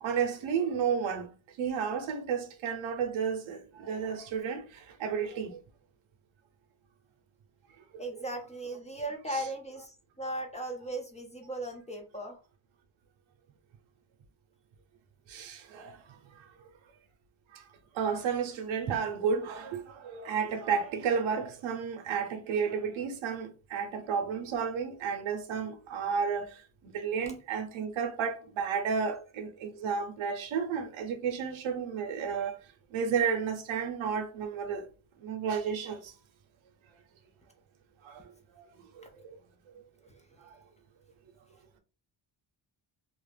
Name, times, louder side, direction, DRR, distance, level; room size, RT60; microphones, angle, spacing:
voice 1, 0.0-1.3 1.6-5.6 9.3-9.4 15.3-16.0 17.5-17.6 17.9-26.5 26.8-32.6 32.9-34.9 35.2-36.1 38.0-38.2 38.6-38.7 39.0-39.3, right 6 dB, 80° right, 0.6 m, -32 dB
voice 2, 8.0-12.4, right 1 dB, 15° left, 0.3 m, -37 dB
2.4 x 2.1 x 3.2 m
wide cardioid pair, 140°, 47 cm